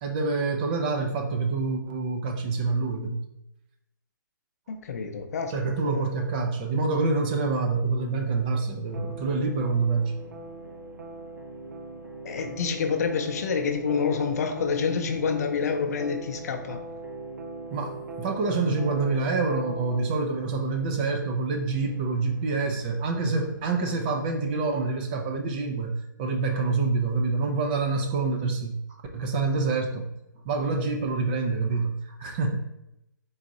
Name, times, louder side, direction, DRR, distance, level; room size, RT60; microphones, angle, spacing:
voice 1, 0.0-3.2 5.5-10.1 17.7-28.8 29.1-30.1 30.4-32.6, right 3 dB, 25° right, 3 dB, 0.5 m, -27 dB
voice 2, 4.7-6.2 12.2-16.8, left 5 dB, 50° left, 5 dB, 0.6 m, -28 dB
sound 1, 8.9-25.6, right 2 dB, 70° right, 0.7 m, -41 dB
3.9 x 2.5 x 4.0 m, 0.85 s
hypercardioid pair, 145°, 11 cm